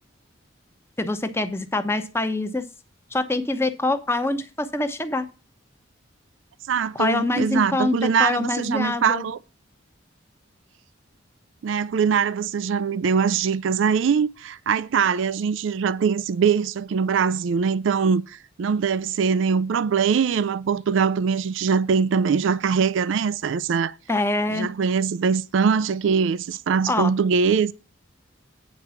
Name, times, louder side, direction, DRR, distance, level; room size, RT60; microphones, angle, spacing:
voice 1, 1.0-2.6 3.1-5.3 6.9-7.9 8.2-9.2 24.1-24.7 26.9-27.1, left 2 dB, 15° left, 0.9 m, -24 dB
voice 2, 6.7-9.4 11.6-24.0 24.5-27.7, right 6 dB, 70° right, 0.4 m, -22 dB
9.1 x 4.6 x 6.9 m
head